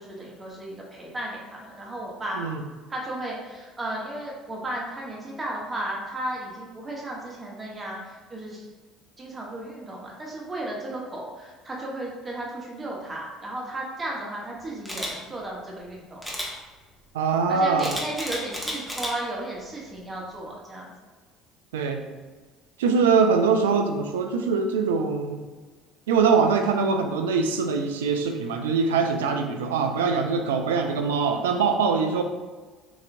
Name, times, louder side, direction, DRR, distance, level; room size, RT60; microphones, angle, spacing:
voice 1, 0.0-2.4 2.9-8.6 9.2-16.2 17.5-20.9, right 1 dB, 25° right, -3 dB, 1.1 m, -34 dB
Camera, 14.8-15.1 16.2-16.5 17.8-19.1 19.6-19.9, equal, ahead, 0.9 m, -32 dB
voice 2, 17.1-18.0 21.7-22.1 22.8-25.4 26.1-32.2, right 5 dB, 80° right, 5 dB, 0.3 m, -23 dB
3.8 x 2.7 x 2.5 m, 1.4 s
hypercardioid pair, 65°, 0 cm